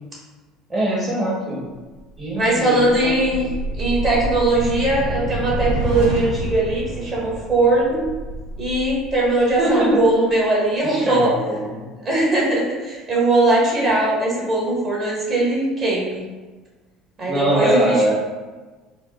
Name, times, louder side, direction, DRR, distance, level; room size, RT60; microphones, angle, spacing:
voice 1, 0.7-1.6 2.2-3.3 9.6-10.0 10.8-11.8 17.3-18.1, right 1 dB, 25° right, -8 dB, 0.9 m, -22 dB
sound 1, 1.9-10.4, right 1 dB, 80° right, 0.6 m, -29 dB
voice 2, 2.3-3.5 3.8-8.0 8.6-11.3 12.0-16.2 17.2-18.1, right 2 dB, 45° right, -5 dB, 1.4 m, -20 dB
4.4 x 2.1 x 2.3 m, 1.3 s
hypercardioid pair, 70°, 0 cm